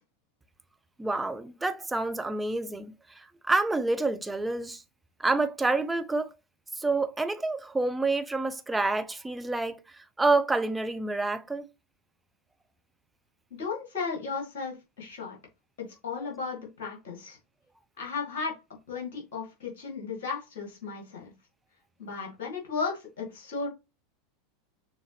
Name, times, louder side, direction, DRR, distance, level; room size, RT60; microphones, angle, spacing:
voice 1, 1.0-4.8 5.2-6.3 6.8-11.7 16.1-16.3, right 3 dB, 10° right, 0.5 m, -28 dB
voice 2, 13.5-15.4 15.8-17.4 18.0-18.6 18.9-21.3 22.0-23.7, left 5 dB, 55° left, 2.2 m, -35 dB
6.5 x 2.5 x 2.9 m
figure-of-eight pair, 85°, 0 cm